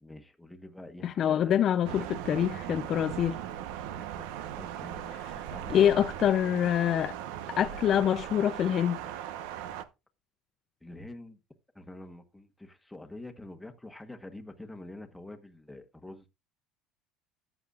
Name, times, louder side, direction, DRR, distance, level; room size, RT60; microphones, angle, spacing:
voice 1, 0.0-1.6 3.9-4.3 4.5-5.8 10.8-11.4 11.7-16.3, left 1 dB, 5° left, 1.2 m, -46 dB
voice 2, 1.0-3.4 5.7-7.2 7.5-9.0, left 10 dB, 40° left, 0.5 m, -25 dB
Thunder, 1.8-9.8, right 10 dB, 90° right, 1.0 m, -39 dB
14.0 x 9.1 x 2.4 m
cardioid pair, 150°, 0 cm